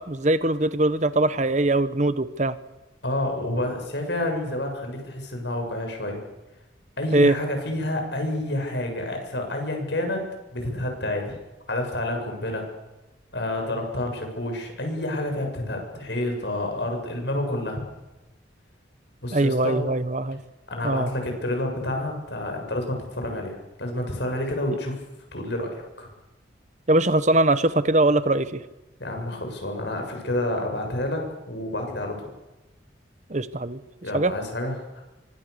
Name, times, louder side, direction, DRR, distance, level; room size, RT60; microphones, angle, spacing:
voice 1, 0.0-2.6 7.1-7.3 19.3-20.4 20.8-21.1 26.9-28.6 33.3-33.8 34.1-34.3, right 2 dB, 35° right, 14 dB, 1.0 m, -21 dB
voice 2, 3.0-6.2 7.0-11.3 11.7-12.7 13.3-17.8 19.2-19.8 20.7-24.9 25.3-26.1 29.0-32.3 34.0-35.0, left 1 dB, 60° left, 3 dB, 7.4 m, -29 dB
27.5 x 25.0 x 6.9 m, 1.1 s
head